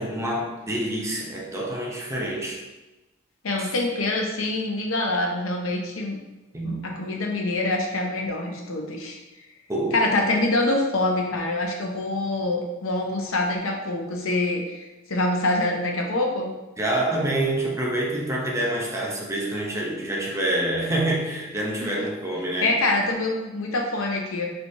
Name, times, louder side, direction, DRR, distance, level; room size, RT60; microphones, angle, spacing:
voice 1, 0.0-2.6 3.6-3.7 6.5-6.9 9.7-10.0 16.8-22.8, right 1 dB, 15° right, -2 dB, 0.6 m, -27 dB
voice 2, 3.4-6.2 6.6-9.2 9.9-16.5 21.8-22.0 22.6-24.5, left 2 dB, 80° left, 1 dB, 0.8 m, -25 dB
4.5 x 3.3 x 2.6 m, 1.1 s
head